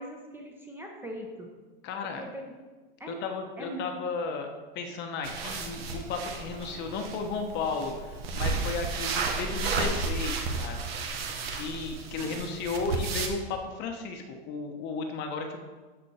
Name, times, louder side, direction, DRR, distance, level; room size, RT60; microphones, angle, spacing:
voice 1, 0.0-1.5 2.0-2.4 3.0-3.2 3.6-3.9 12.2-12.3, equal, 5° right, 1 dB, 0.8 m, -41 dB
voice 2, 1.8-2.2 3.1-4.5 4.7-10.9 11.5-15.6, left 4 dB, 35° left, 4 dB, 0.9 m, -34 dB
sound 1, 5.2-13.3, right 4 dB, 85° right, 1.2 m, -33 dB
12.5 x 4.3 x 4.2 m, 1.3 s
supercardioid pair, 150°, 30 cm